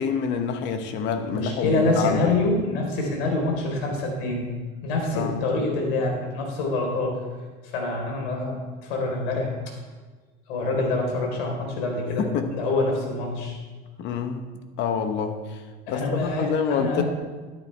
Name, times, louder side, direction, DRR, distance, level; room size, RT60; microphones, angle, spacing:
voice 1, 0.0-2.3 5.1-5.5 12.2-12.5 14.0-14.5 14.8-15.6 15.9-17.0, left 6 dB, 40° left, 7 dB, 1.0 m, -27 dB
voice 2, 1.3-4.5 4.8-7.2 7.6-9.7 10.5-13.6 15.9-17.0, left 2 dB, 80° left, 0 dB, 3.9 m, -26 dB
13.5 x 10.5 x 3.3 m, 1.4 s
supercardioid pair, 160°, 30 cm